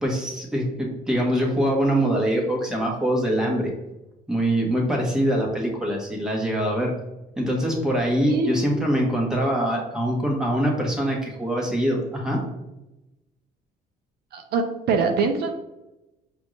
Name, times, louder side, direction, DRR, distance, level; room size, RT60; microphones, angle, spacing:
voice 1, 0.0-3.7 4.3-6.9 7.4-12.4, equal, 5° right, -2 dB, 1.2 m, -23 dB
voice 2, 8.2-8.6 14.3-15.5, right 4 dB, 70° right, 5 dB, 0.5 m, -24 dB
5.0 x 2.6 x 3.2 m, 0.95 s
cardioid pair, 110°, 17 cm